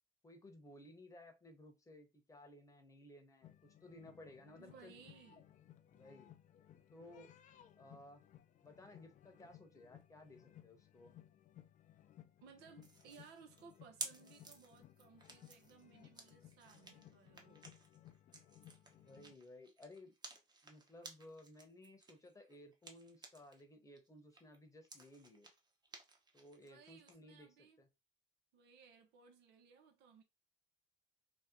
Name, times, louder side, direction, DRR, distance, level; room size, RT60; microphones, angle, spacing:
voice 1, 0.2-5.0 5.9-6.3 6.9-7.3 7.8-8.2 8.6-11.1 18.9-20.1 20.6-25.5 26.3-27.5 27.8-27.9, left 1 dB, 20° left, 0.8 m, -58 dB
sound 1, 3.4-19.3, left 11 dB, 50° left, 0.4 m, -62 dB
voice 2, 4.6-5.5 12.4-17.6 26.7-27.8 28.5-30.2, right 6 dB, 90° right, 0.8 m, -61 dB
sound 2, 12.8-23.6 24.0-27.1, right 3 dB, 25° right, 0.8 m, -54 dB
2.8 x 2.2 x 3.6 m
cardioid pair, 110°, 17 cm